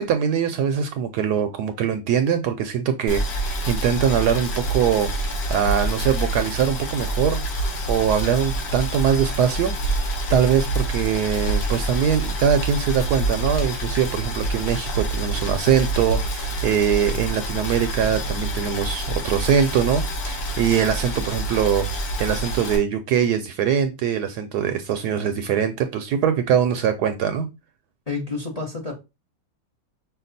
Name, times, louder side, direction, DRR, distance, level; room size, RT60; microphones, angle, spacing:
voice 1, 0.0-5.1 5.5-9.7 10.3-21.9 22.2-27.5, right 8 dB, 70° right, 1.0 m, -22 dB
Boiling, 3.1-22.8, right 1 dB, 70° left, 1.8 m, -27 dB
voice 2, 28.1-28.9, left 4 dB, 30° left, 0.8 m, -29 dB
5.8 x 2.3 x 3.9 m
omnidirectional pair, 2.0 m